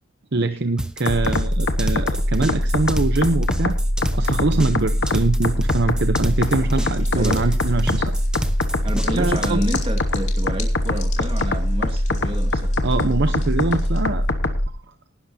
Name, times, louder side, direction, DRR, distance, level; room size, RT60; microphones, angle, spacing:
voice 1, 0.3-3.8 4.1-8.1 9.1-9.6 12.8-14.3, right 3 dB, 50° right, 0.8 m, -23 dB
sound 1, 0.8-9.5, right 1 dB, 5° right, 1.0 m, -30 dB
sound 2, 1.1-14.7, left 1 dB, 55° left, 1.3 m, -22 dB
sound 3, 6.3-14.3, left 4 dB, 30° left, 3.2 m, -41 dB
voice 2, 7.2-7.6 8.8-12.8, right 1 dB, 25° right, 1.9 m, -30 dB
18.5 x 11.5 x 2.8 m
head